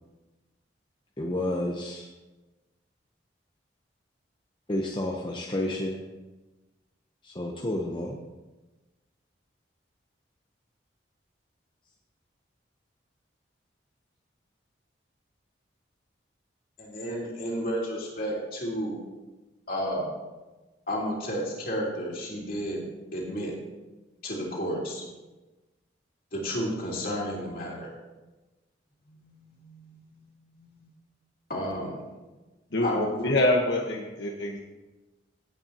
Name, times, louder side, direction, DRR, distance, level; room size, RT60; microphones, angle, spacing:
voice 1, 1.2-2.1 4.7-6.0 7.2-8.2, left 1 dB, 25° left, -1 dB, 0.8 m, -30 dB
voice 2, 16.8-19.0 19.7-20.1 20.9-22.8 23.1-23.5 24.2-25.0 26.3-27.9 29.2-30.2 30.6-30.9 31.5-32.0 32.8-33.1, equal, 50° left, -4 dB, 3.0 m, -32 dB
voice 3, 32.7-34.6, left 1 dB, 70° left, -1 dB, 1.2 m, -26 dB
16.5 x 8.6 x 2.9 m, 1.2 s
head